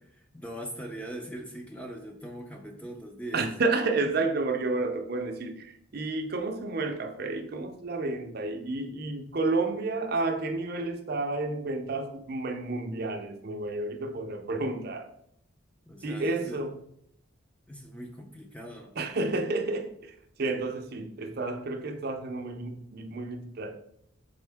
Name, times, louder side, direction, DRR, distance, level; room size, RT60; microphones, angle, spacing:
voice 1, 0.3-3.5 15.9-16.6 17.7-18.9, right 1 dB, 5° left, 0.4 m, -41 dB
voice 2, 3.3-15.1 16.0-16.8 19.0-23.8, right 3 dB, 45° right, 0.5 m, -31 dB
4.3 x 3.6 x 3.4 m
head